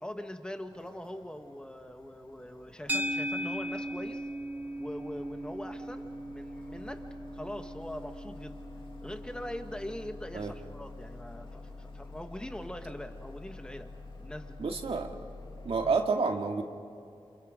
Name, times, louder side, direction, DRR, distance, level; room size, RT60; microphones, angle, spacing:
voice 1, 0.0-4.2 4.8-6.1 6.3-7.0 7.3-8.6 9.0-13.9 14.2-14.6 15.8-15.9, left 1 dB, 10° left, 6 dB, 1.6 m, -42 dB
sound 1, 0.7-15.9, left 3 dB, 55° left, 2.3 m, -48 dB
sound 2, 2.9-11.3, equal, 15° right, 0.7 m, -39 dB
voice 2, 14.6-15.2 15.6-16.6, right 4 dB, 75° right, 3 dB, 2.1 m, -29 dB
29.0 x 29.0 x 5.2 m, 2.5 s
wide cardioid pair, 125°, 10 cm